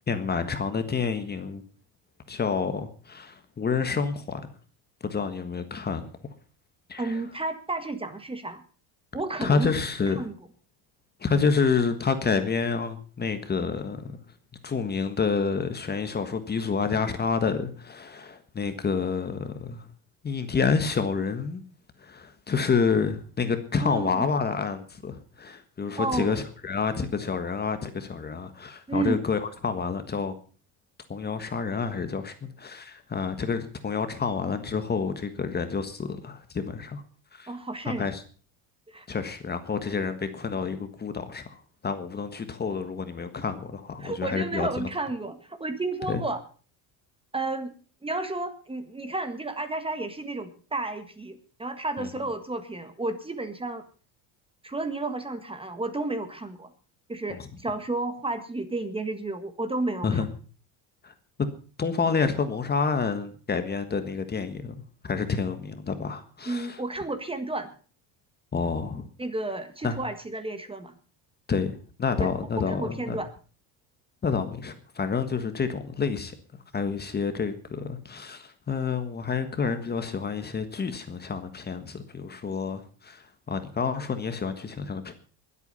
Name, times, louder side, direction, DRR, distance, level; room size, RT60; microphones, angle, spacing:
voice 1, 0.1-1.6 2.3-4.4 5.0-6.1 6.9-7.2 9.4-10.3 11.2-14.0 14.6-19.9 20.2-21.6 22.0-30.3 31.1-37.0 37.3-37.5 37.8-38.2 39.1-44.9 46.1-46.2 52.0-52.1 57.3-57.5 60.0-60.3 61.0-61.1 61.8-64.7 65.0-66.8 68.5-69.1 69.8-70.0 71.5-73.2 74.2-85.1, left 5 dB, 25° left, 1.5 m, -29 dB
voice 2, 7.0-8.6 9.1-9.7 10.2-10.3 23.8-24.2 26.0-26.3 28.9-29.2 37.5-38.1 38.9-39.1 44.0-46.4 47.3-47.7 48.0-53.8 54.6-56.7 57.1-60.2 66.5-67.7 69.2-70.9 72.2-72.3 72.6-73.3, right 2 dB, 15° right, 1.5 m, -32 dB
21.5 x 8.4 x 5.5 m
cardioid pair, 125°, 42 cm